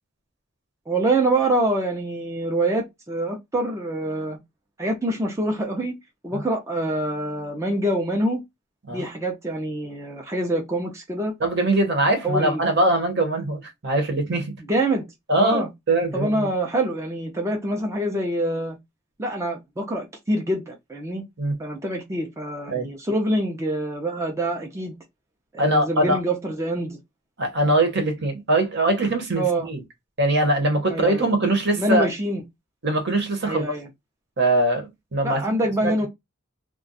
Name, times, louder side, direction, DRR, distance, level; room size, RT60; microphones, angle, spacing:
voice 1, 0.9-4.4 4.8-6.0 6.2-8.4 8.9-11.3 12.2-12.7 14.7-15.1 15.4-15.7 16.1-18.8 19.2-21.2 21.6-24.9 25.5-27.0 29.4-29.7 30.9-31.3 31.8-32.4 33.4-33.9 35.2-36.1, right 1 dB, 15° right, 0.5 m, -25 dB
voice 2, 11.4-14.6 15.3-16.5 21.4-21.5 22.7-22.9 25.6-26.2 27.4-29.8 30.2-32.1 32.8-33.7 34.4-35.4 35.8-36.1, right 1 dB, 55° right, 1.0 m, -22 dB
2.4 x 2.2 x 3.9 m
head